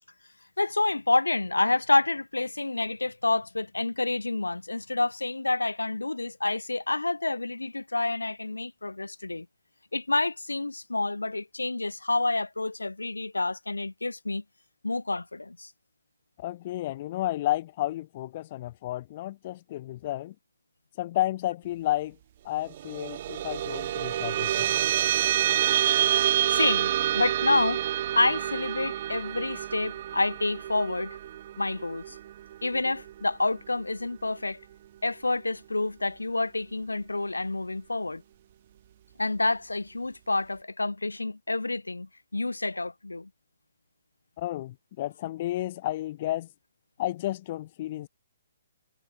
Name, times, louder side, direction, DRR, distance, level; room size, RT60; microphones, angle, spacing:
voice 1, 0.6-9.5 9.9-14.4 14.8-15.7 25.4-25.8 26.5-27.9 28.2-31.2 31.6-32.2 32.6-34.6 35.0-38.2 39.2-43.3, left 2 dB, 90° left, 3.6 m, -28 dB
voice 2, 16.4-20.3 21.0-22.2 22.4-24.8 44.4-46.5 47.0-48.1, left 14 dB, 40° left, 5.8 m, -32 dB
sound 1, 22.7-33.4, right 12 dB, 45° right, 3.9 m, -28 dB
figure-of-eight pair, 130°, 0 cm